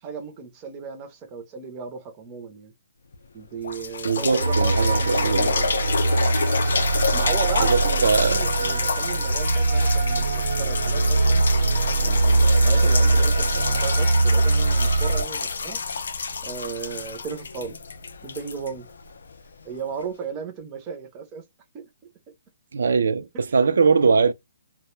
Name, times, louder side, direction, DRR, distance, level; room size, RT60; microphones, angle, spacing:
voice 1, 0.0-2.7 3.3-5.7 7.1-11.4 12.0-15.8 16.4-17.8 18.2-18.9 19.6-21.4 21.7-21.9, right 5 dB, 15° right, 0.5 m, -35 dB
sound 1, 3.1-3.2 3.6-19.4 20.0-20.1, left 5 dB, 70° left, 0.3 m, -28 dB
voice 2, 4.0-5.6 7.6-8.4 22.7-24.3, right 5 dB, 70° right, 0.3 m, -21 dB
sound 2, 4.4-15.2, right 3 dB, 90° right, 0.7 m, -21 dB
sound 3, 4.7-8.3 8.9-14.1, left 5 dB, 25° left, 0.6 m, -44 dB
2.0 x 2.0 x 3.0 m
hypercardioid pair, 175°, 0 cm